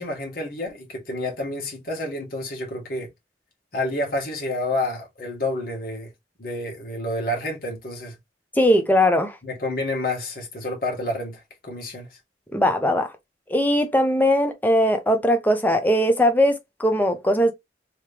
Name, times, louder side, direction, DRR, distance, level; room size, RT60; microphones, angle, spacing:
voice 1, 0.0-3.1 3.7-6.1 6.4-8.1 9.4-12.2, left 1 dB, 55° left, 1.5 m, -29 dB
voice 2, 8.6-9.4 12.5-13.1 13.5-17.5, equal, 10° left, 0.6 m, -20 dB
3.1 x 2.9 x 3.3 m
head